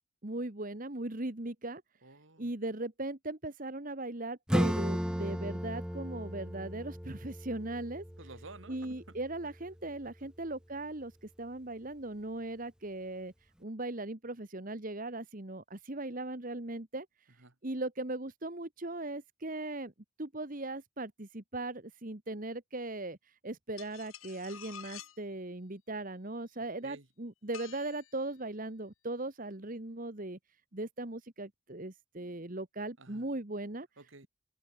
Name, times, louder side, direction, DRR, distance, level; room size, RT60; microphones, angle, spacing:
voice 1, 0.2-1.8 2.4-8.0 8.7-13.3 13.6-17.1 17.6-19.9 20.2-23.2 23.4-30.4 30.7-33.9, right 2 dB, 40° right, 1.5 m, -38 dB
voice 2, 2.0-2.5 8.2-9.2 17.4-17.5 26.8-27.1 33.0-33.3 34.0-34.3, right 3 dB, 65° right, 2.3 m, -51 dB
Acoustic guitar / Strum, 4.5-9.7, equal, 5° right, 1.6 m, -35 dB
sound 1, 23.8-25.2 27.5-28.3, left 10 dB, 75° left, 1.8 m, -49 dB
open air
head